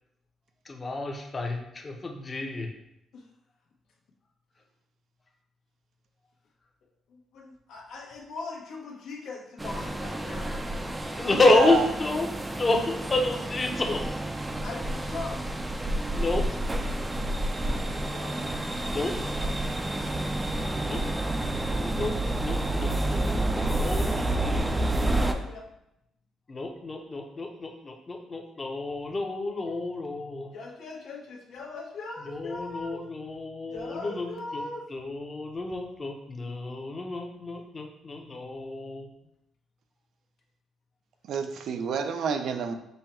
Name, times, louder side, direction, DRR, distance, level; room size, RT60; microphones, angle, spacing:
voice 1, 0.6-2.7 11.2-14.1 16.1-16.6 18.9-19.4 20.8-21.1 21.6-24.3 26.5-30.5 32.2-39.1, left 2 dB, 30° left, 2 dB, 0.8 m, -29 dB
voice 2, 7.1-10.7 14.6-15.4 17.6-18.4 25.1-25.6 30.5-33.0 33.7-34.8, left 3 dB, 75° left, -2 dB, 1.1 m, -40 dB
sound 1, 9.6-25.3, right 1 dB, 15° right, 0.4 m, -29 dB
voice 3, 11.4-11.8 41.3-42.7, right 6 dB, 70° right, 7 dB, 0.5 m, -28 dB
5.5 x 2.2 x 4.3 m, 0.82 s
cardioid pair, 90°, 0 cm